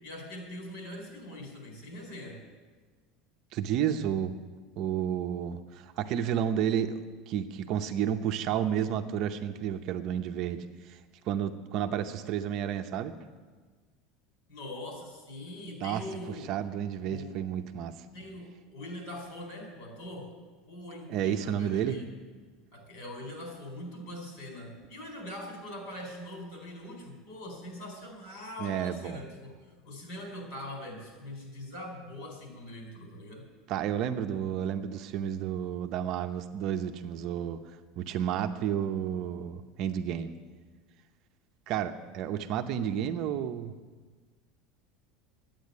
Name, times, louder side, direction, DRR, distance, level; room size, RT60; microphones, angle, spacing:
voice 1, 0.0-2.4 14.5-16.5 17.0-17.5 18.1-20.3 20.7-22.1 22.7-33.4, left 1 dB, 60° left, 2 dB, 4.4 m, -42 dB
voice 2, 3.5-4.3 4.8-7.0 7.3-11.0 11.3-13.1 15.8-18.0 21.1-22.0 28.6-29.2 33.7-37.6 38.0-40.3 41.7-43.7, right 9 dB, 40° right, 6 dB, 0.7 m, -31 dB
12.0 x 9.0 x 9.5 m, 1.4 s
cardioid pair, 175°, 0 cm